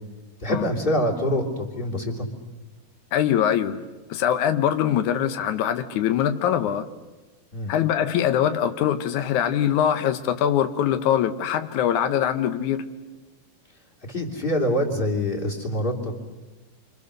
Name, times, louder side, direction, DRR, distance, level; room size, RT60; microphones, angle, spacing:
voice 1, 0.4-2.3 7.5-7.7 14.1-16.1, equal, 15° left, -1 dB, 2.8 m, -25 dB
voice 2, 3.1-3.8 4.1-6.9 7.7-12.8, left 10 dB, 90° left, 9 dB, 1.7 m, -23 dB
28.0 x 26.0 x 6.7 m, 1.2 s
omnidirectional pair, 4.8 m